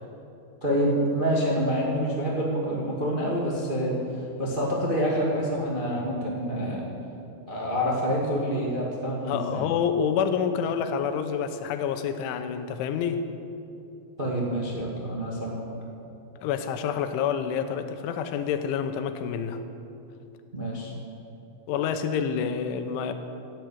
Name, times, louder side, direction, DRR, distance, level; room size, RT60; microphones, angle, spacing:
voice 1, 0.6-6.8 7.5-9.6 14.2-15.6 20.5-20.9, equal, 30° right, -4 dB, 0.9 m, -27 dB
voice 2, 9.2-13.2 16.4-19.6 21.7-23.1, left 7 dB, 90° left, 8 dB, 3.3 m, -28 dB
16.0 x 10.5 x 8.0 m, 2.8 s
omnidirectional pair, 5.3 m